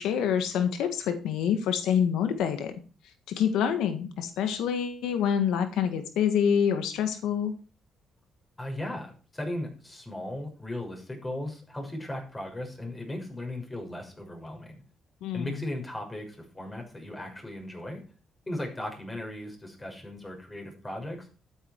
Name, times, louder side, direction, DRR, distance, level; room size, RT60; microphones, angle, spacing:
voice 1, 0.0-2.7 3.3-7.5 15.2-15.6, left 8 dB, 90° left, 8 dB, 1.6 m, -26 dB
voice 2, 8.6-14.8 15.3-18.0 18.5-21.3, left 1 dB, 20° left, 2 dB, 6.3 m, -37 dB
12.5 x 9.9 x 4.7 m, 0.35 s
cardioid pair, 90°, 0 cm